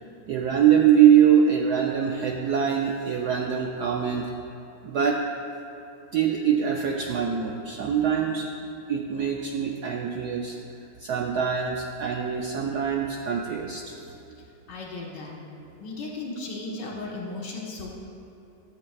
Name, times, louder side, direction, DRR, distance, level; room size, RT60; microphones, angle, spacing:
voice 1, 0.3-4.3 4.8-5.2 6.1-8.5 8.9-10.6 11.0-13.9, right 8 dB, 75° right, 1 dB, 0.9 m, -23 dB
voice 2, 14.7-15.3 15.8-18.0, left 2 dB, 60° left, -2 dB, 1.8 m, -35 dB
13.0 x 7.9 x 2.3 m, 2.9 s
omnidirectional pair, 2.2 m